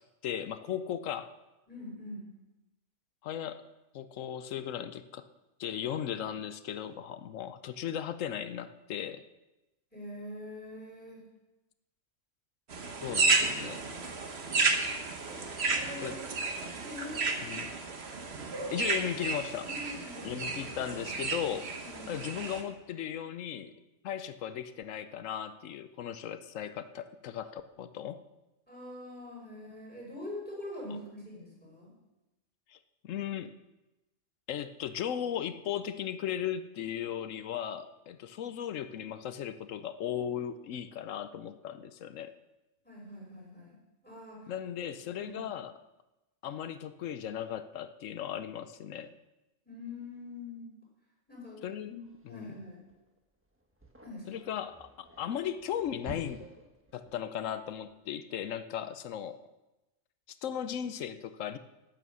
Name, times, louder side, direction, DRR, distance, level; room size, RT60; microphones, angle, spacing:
voice 1, 0.2-1.3 3.2-3.6 3.9-5.3 5.6-9.2 13.0-13.9 16.0-16.2 17.4-17.7 18.7-19.7 20.2-21.7 22.1-23.7 24.0-28.2 32.7-32.8 33.0-33.5 34.5-42.3 44.5-45.7 46.4-49.2 51.6-51.9 52.2-52.5 54.3-54.9 55.2-56.5 56.9-59.4 60.4-61.6, left 9 dB, 80° left, 12 dB, 1.0 m, -37 dB
voice 2, 1.7-2.3 9.9-11.2 15.2-16.2 16.7-17.5 19.6-20.4 21.8-22.2 28.7-31.9 42.8-44.5 44.8-44.9 45.2-45.4 49.7-50.7 51.3-52.0 52.3-52.8 54.0-54.4, left 1 dB, 5° left, -4 dB, 5.4 m, -44 dB
sound 1, 12.7-22.6, right 3 dB, 55° right, 1.4 m, -32 dB
sound 2, 52.1-58.0, right 1 dB, 10° right, 1.3 m, -51 dB
12.5 x 9.1 x 6.2 m, 1.0 s
omnidirectional pair, 1.3 m